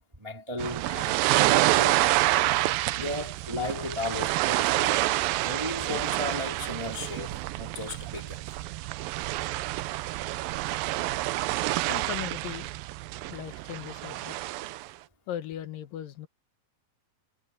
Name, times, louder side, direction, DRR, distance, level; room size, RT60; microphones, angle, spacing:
voice 1, 0.0-2.1 2.9-5.2 5.4-8.5, left 2 dB, 10° right, 1.4 m, -36 dB
sound 1, 0.6-14.9, right 17 dB, 85° right, 2.4 m, -28 dB
voice 2, 11.9-12.7 13.3-14.4 15.3-16.3, left 11 dB, 75° left, 2.9 m, -38 dB
omnidirectional pair, 4.0 m